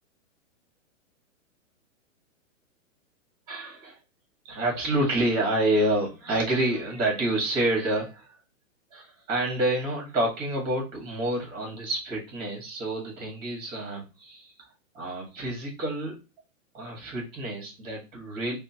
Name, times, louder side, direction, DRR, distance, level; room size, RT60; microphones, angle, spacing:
voice 1, 3.5-4.0 4.4-8.3 8.9-14.5 14.9-16.2 16.7-18.6, right 1 dB, 25° right, 0 dB, 1.8 m, -28 dB
5.3 x 2.2 x 2.9 m, 0.29 s
hypercardioid pair, 145°, 40 cm